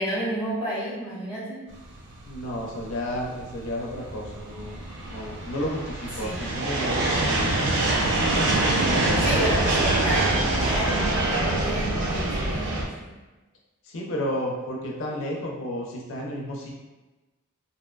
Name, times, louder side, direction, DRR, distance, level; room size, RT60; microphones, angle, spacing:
voice 1, 0.0-1.6 6.2-6.4 9.2-13.1, equal, 5° right, -9 dB, 0.8 m, -30 dB
sound 1, 1.9-12.8, right 2 dB, 60° right, 0.4 m, -25 dB
voice 2, 2.2-4.8 5.1-7.6 8.7-9.2 13.8-16.7, equal, 65° left, -2 dB, 0.4 m, -32 dB
2.5 x 2.2 x 2.2 m, 1.1 s
head